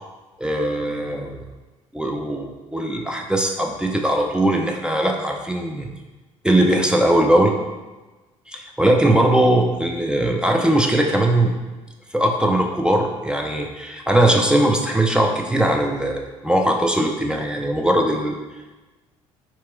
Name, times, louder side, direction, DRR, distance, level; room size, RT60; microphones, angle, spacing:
voice 1, 0.4-1.4 1.9-5.9 6.4-7.5 8.5-11.5 12.1-18.4, right 1 dB, 5° right, 1 dB, 0.6 m, -20 dB
4.8 x 3.0 x 3.4 m, 1.2 s
figure-of-eight pair, 50°, 16 cm